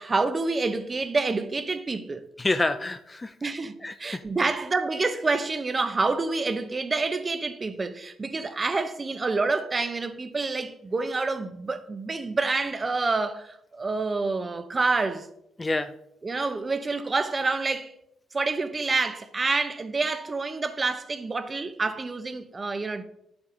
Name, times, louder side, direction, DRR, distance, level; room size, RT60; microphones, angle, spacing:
voice 1, 0.0-2.2 3.4-15.3 16.2-17.9 18.3-23.0, right 3 dB, 30° right, 0.9 m, -28 dB
voice 2, 2.4-3.4 3.8-4.6 15.6-15.9, left 2 dB, 20° left, 0.5 m, -28 dB
11.0 x 7.1 x 3.9 m
cardioid pair, 90°, 0 cm